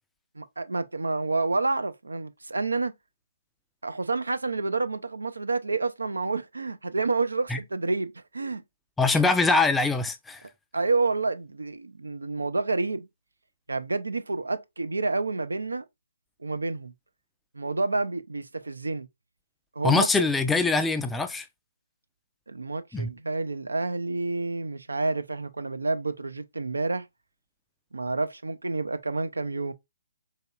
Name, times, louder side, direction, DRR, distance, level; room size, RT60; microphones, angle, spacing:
voice 1, 0.4-2.9 3.8-8.6 10.7-13.1 13.7-15.8 16.4-16.9 17.5-19.1 19.8-20.1 22.5-27.1 27.9-29.7, right 3 dB, 75° right, 0.4 m, -29 dB
voice 2, 9.0-10.4 19.8-21.5 22.9-23.1, left 3 dB, 5° left, 0.3 m, -23 dB
4.1 x 2.9 x 2.3 m
figure-of-eight pair, 135°, 0 cm